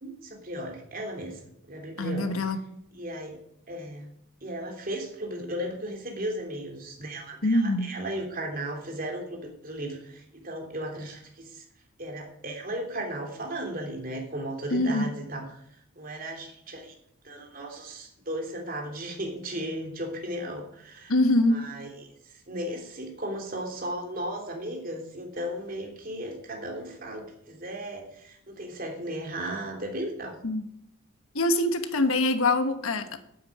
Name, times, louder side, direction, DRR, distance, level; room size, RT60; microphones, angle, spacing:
voice 1, 0.0-2.4 2.9-3.4 3.7-4.1 4.4-11.6 12.0-15.6 16.0-16.9 17.2-21.2 21.5-30.4, right 1 dB, 40° right, 1 dB, 3.0 m, -36 dB
voice 2, 2.0-2.6 7.4-7.9 14.7-15.1 21.1-21.6 30.4-30.6 31.3-33.2, left 2 dB, 75° left, 9 dB, 1.2 m, -24 dB
9.1 x 8.7 x 8.6 m, 0.76 s
head